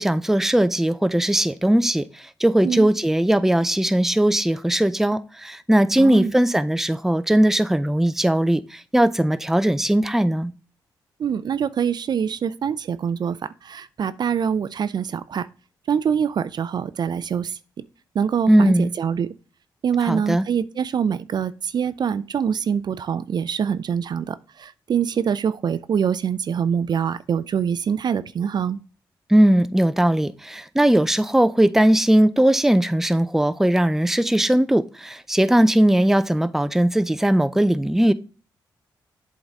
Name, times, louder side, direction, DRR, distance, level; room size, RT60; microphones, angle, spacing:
voice 1, 0.0-2.1 2.4-10.5 18.5-18.9 20.0-20.5 29.3-38.1, right 1 dB, 5° right, 0.5 m, -19 dB
voice 2, 6.0-6.3 11.2-15.5 15.9-17.6 18.1-19.3 19.8-28.8, right 7 dB, 60° right, 0.4 m, -24 dB
7.8 x 3.7 x 4.1 m
supercardioid pair, 55°, 8 cm